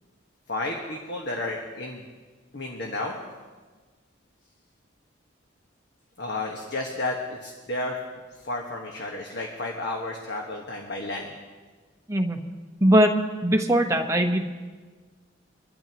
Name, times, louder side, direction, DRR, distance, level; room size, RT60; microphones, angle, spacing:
voice 1, 0.5-2.0 2.5-3.2 6.2-7.9 8.3-11.3, left 2 dB, 55° left, 0 dB, 1.5 m, -32 dB
voice 2, 12.1-12.4 12.8-13.1 13.4-14.5, right 1 dB, 15° right, 4 dB, 1.1 m, -20 dB
25.0 x 12.5 x 3.0 m, 1.4 s
head